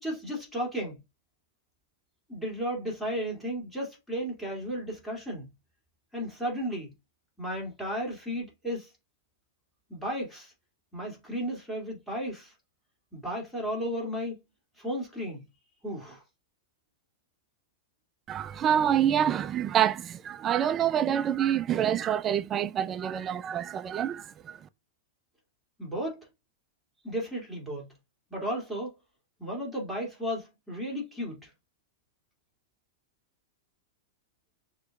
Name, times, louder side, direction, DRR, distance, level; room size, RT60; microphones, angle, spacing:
voice 1, 0.0-1.0 2.3-5.5 6.1-6.9 7.4-8.9 9.9-10.5 10.9-12.5 13.1-14.4 14.8-15.4 15.8-16.2 25.8-26.3 27.0-27.9 28.3-28.9 29.4-31.5, equal, 5° left, 2.6 m, -34 dB
voice 2, 18.3-24.6, right 9 dB, 25° right, 0.4 m, -27 dB
6.4 x 3.0 x 2.5 m
hypercardioid pair, 130°, 0 cm